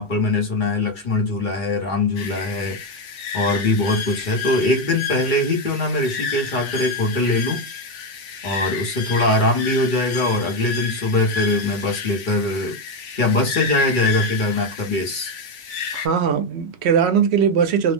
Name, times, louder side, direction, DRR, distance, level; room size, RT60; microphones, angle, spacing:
voice 1, 0.0-3.0 3.3-7.6 8.4-12.8 13.1-15.3, left 2 dB, 50° left, 0.9 m, -22 dB
sound 1, 2.2-16.1, left 7 dB, 85° left, 1.0 m, -31 dB
voice 2, 15.9-17.9, right 7 dB, 70° right, 0.8 m, -19 dB
2.8 x 2.0 x 3.1 m
omnidirectional pair, 1.2 m